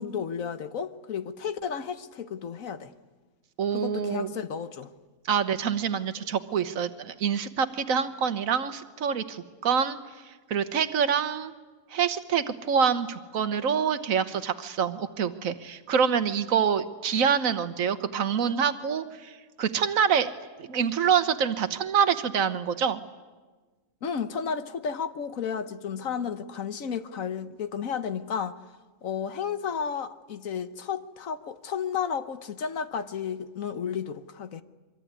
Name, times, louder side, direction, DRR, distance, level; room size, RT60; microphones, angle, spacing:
voice 1, 0.0-2.9 3.7-4.9 24.0-28.6 29.0-34.6, left 7 dB, 75° left, 1.5 m, -32 dB
voice 2, 3.6-4.3 5.3-10.0 10.5-11.5 11.9-20.3 20.6-23.0, right 7 dB, 75° right, 1.5 m, -26 dB
24.5 x 23.5 x 9.6 m
omnidirectional pair, 1.4 m